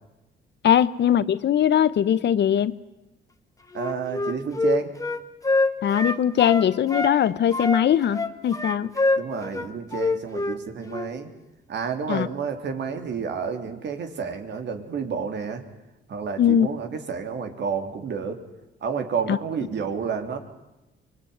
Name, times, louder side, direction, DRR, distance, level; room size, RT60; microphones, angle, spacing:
voice 1, 0.6-2.8 5.8-8.9 12.1-12.3 16.4-16.7 19.3-19.4, left 9 dB, 60° left, 16 dB, 1.0 m, -20 dB
Wind instrument woodwind instrument, 3.7-7.2 7.5-10.6 10.9-11.1, left 2 dB, 15° left, 1.8 m, -25 dB
voice 2, 3.7-4.9 9.2-11.3 11.7-15.6 16.1-18.4 18.8-20.4, right 6 dB, 60° right, 6 dB, 3.4 m, -30 dB
25.0 x 22.0 x 9.6 m, 0.98 s
cardioid pair, 90°, 20 cm